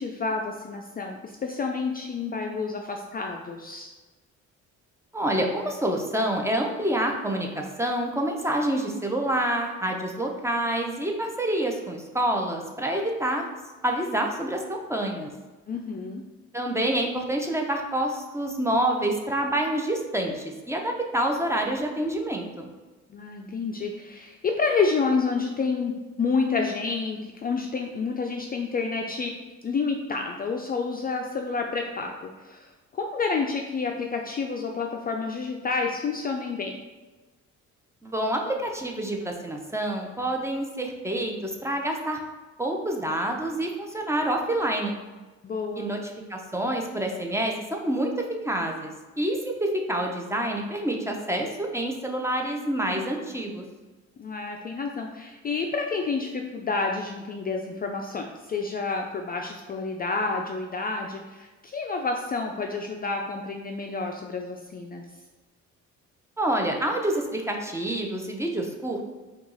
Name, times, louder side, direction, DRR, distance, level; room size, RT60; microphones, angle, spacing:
voice 1, 0.0-3.9 15.7-16.2 23.1-29.4 29.6-36.8 45.4-45.9 54.2-65.1, left 4 dB, 30° left, 2 dB, 0.4 m, -29 dB
voice 2, 5.1-13.5 13.8-15.3 16.5-22.7 38.0-42.2 42.6-45.0 45.8-46.0 46.3-48.1 48.4-48.9 49.2-53.6 66.4-69.0, right 1 dB, 10° right, 2 dB, 0.6 m, -27 dB
4.5 x 2.4 x 3.9 m, 1.2 s
cardioid pair, 90°, 30 cm